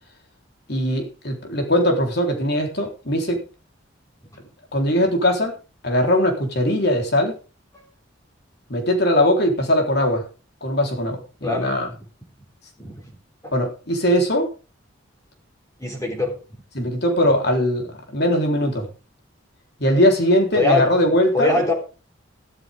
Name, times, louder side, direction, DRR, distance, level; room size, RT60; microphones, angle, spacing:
voice 1, 0.7-3.4 4.7-5.5 5.8-7.3 8.7-10.3 10.6-11.9 13.5-14.5 16.7-18.9 19.8-21.6, equal, 55° left, 3 dB, 4.0 m, -20 dB
voice 2, 11.4-11.8 12.8-13.1 13.4-13.5 15.8-16.4 20.5-20.9 21.3-21.7, left 2 dB, 15° left, 0 dB, 3.5 m, -22 dB
13.5 x 12.5 x 3.7 m, 0.33 s
head